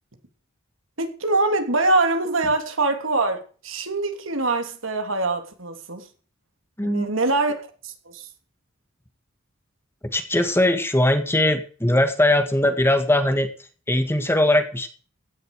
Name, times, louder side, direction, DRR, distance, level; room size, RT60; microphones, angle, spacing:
voice 1, 1.0-6.1 6.8-8.3, right 2 dB, 75° right, 3.0 m, -24 dB
voice 2, 6.8-7.1 10.1-13.5 13.9-14.9, left 1 dB, 10° left, 1.9 m, -20 dB
16.5 x 11.0 x 4.9 m
head